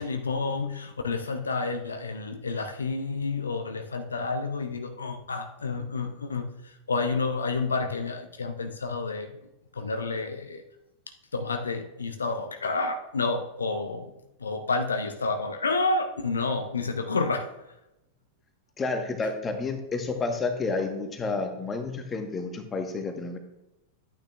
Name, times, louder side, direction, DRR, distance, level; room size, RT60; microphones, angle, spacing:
voice 1, 0.0-9.4 9.7-10.6 11.3-14.1 14.4-17.5, left 3 dB, 75° left, 7 dB, 0.6 m, -30 dB
voice 2, 18.8-23.4, left 3 dB, 20° left, 5 dB, 1.3 m, -30 dB
11.5 x 9.0 x 2.4 m, 0.91 s
figure-of-eight pair, 90°, 0 cm